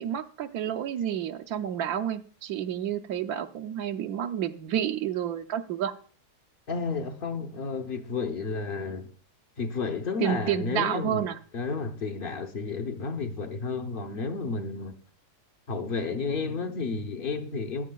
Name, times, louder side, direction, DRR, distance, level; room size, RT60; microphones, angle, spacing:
voice 1, 0.0-5.9 10.2-11.4, right 10 dB, 70° right, 1.1 m, -30 dB
voice 2, 6.7-9.1 9.6-15.0 15.7-17.9, left 4 dB, 45° left, 0.7 m, -32 dB
14.0 x 9.7 x 2.3 m
omnidirectional pair, 1.7 m